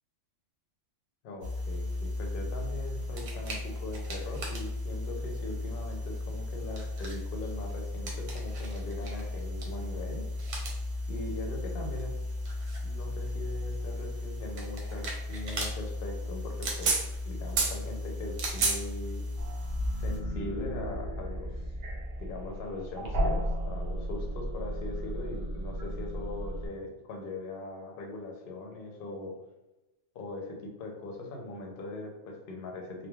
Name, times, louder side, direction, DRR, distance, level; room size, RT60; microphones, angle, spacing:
voice 1, 1.2-10.3 11.1-12.1 12.8-17.0 17.2-19.2 20.0-21.6 22.2-29.3 30.1-33.1, left 2 dB, 60° left, 1 dB, 0.7 m, -40 dB
sound 1, 1.4-20.2, equal, 85° right, 1.0 m, -34 dB
sound 2, 19.4-26.7, equal, 55° right, 0.7 m, -34 dB
3.0 x 2.1 x 2.3 m, 0.98 s
omnidirectional pair, 1.2 m